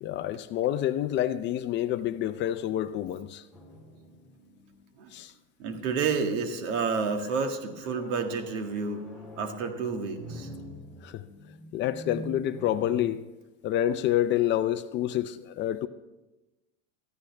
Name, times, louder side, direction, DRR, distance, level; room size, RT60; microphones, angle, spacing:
voice 1, 0.0-3.4 5.1-5.3 11.0-11.2 11.7-13.2 13.6-15.9, left 12 dB, 30° left, 0.4 m, -28 dB
sound 1, 3.5-5.3 5.9-6.3 7.1-13.0, equal, ahead, 3.3 m, -45 dB
voice 2, 5.6-9.0 9.4-10.5, right 5 dB, 85° right, 1.9 m, -30 dB
16.5 x 14.5 x 3.3 m
supercardioid pair, 140°, 36 cm